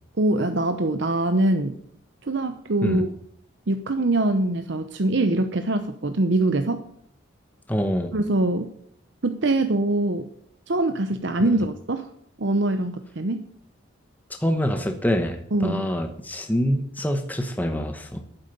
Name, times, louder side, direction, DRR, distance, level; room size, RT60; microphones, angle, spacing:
voice 1, 0.2-1.8 2.2-3.1 3.7-6.8 8.1-8.7 9.2-10.3 10.7-12.1 12.4-13.5 15.5-15.8, right 2 dB, 60° right, 8 dB, 0.8 m, -23 dB
voice 2, 7.7-8.1 11.4-11.5 14.4-18.2, equal, 10° left, 5 dB, 1.0 m, -25 dB
11.0 x 9.1 x 6.9 m, 0.68 s
head